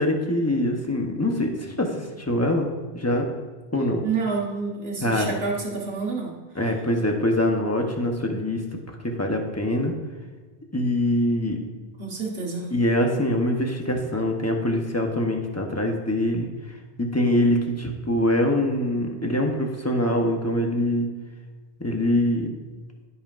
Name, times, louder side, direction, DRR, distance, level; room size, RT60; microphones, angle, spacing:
voice 1, 0.0-2.7 2.9-3.3 3.7-4.0 5.0-5.3 6.5-8.6 8.9-9.9 10.7-11.6 12.7-16.5 17.0-21.1 21.8-22.5, left 1 dB, 15° left, 2 dB, 0.9 m, -24 dB
voice 2, 4.0-6.3 12.0-12.7, right 4 dB, 70° right, -3 dB, 1.7 m, -28 dB
15.5 x 5.7 x 2.6 m, 1.4 s
omnidirectional pair, 1.1 m